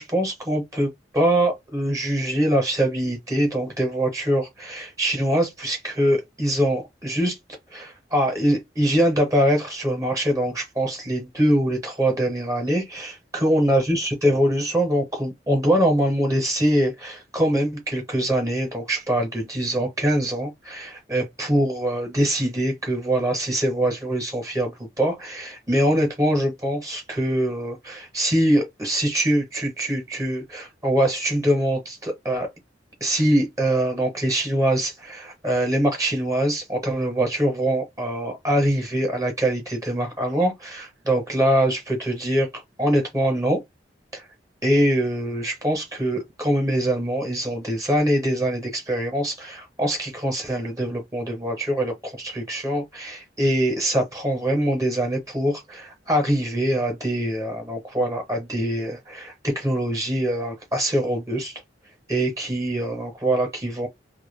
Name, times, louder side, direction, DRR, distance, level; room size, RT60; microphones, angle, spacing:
voice 1, 0.0-7.4 7.7-32.5 33.0-43.6 44.1-44.2 44.6-61.6 62.1-63.9, right 1 dB, 20° right, 0.7 m, -23 dB
2.3 x 2.1 x 3.1 m
head